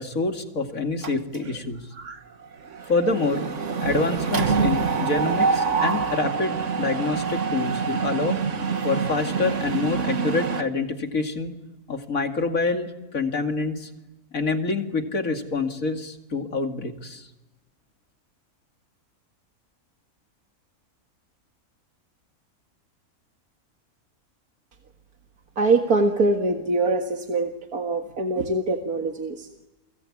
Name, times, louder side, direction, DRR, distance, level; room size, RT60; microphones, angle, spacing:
voice 1, 0.0-1.9 2.9-3.5 3.8-8.4 8.8-11.6 11.9-13.9 14.3-17.3, left 3 dB, 65° left, 4 dB, 2.7 m, -26 dB
Mechanisms, 1.0-1.6 2.0-2.2 2.4-10.6, right 5 dB, 55° right, 1.8 m, -26 dB
voice 2, 25.6-29.5, right 3 dB, 75° right, 3 dB, 2.2 m, -23 dB
29.5 x 22.5 x 8.7 m, 1.0 s
omnidirectional pair, 1.6 m